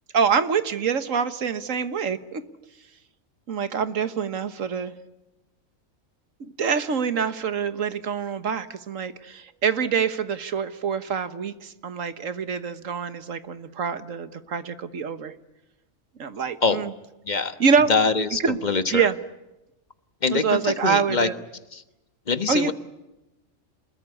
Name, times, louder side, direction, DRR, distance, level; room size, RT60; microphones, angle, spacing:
voice 1, 0.1-2.4 3.5-4.9 6.4-15.3 16.2-16.9 17.6-17.9 18.4-18.6 18.9-19.2 20.3-21.3 22.5-22.7, right 6 dB, 75° right, 11 dB, 1.6 m, -25 dB
voice 2, 17.3-17.6 17.9-18.8 20.2-21.3 21.7-21.8 22.3-22.7, left 4 dB, 35° left, 10 dB, 1.4 m, -23 dB
28.5 x 21.0 x 9.8 m, 0.98 s
omnidirectional pair, 1.4 m